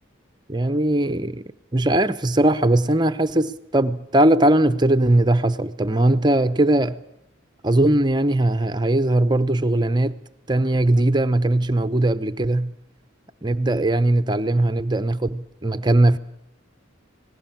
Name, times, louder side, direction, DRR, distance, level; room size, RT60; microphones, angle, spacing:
voice 1, 0.5-1.4 1.7-7.0 7.6-10.2 10.5-12.7 13.4-16.2, right 1 dB, 20° right, 0.8 m, -19 dB
26.5 x 19.5 x 7.4 m
head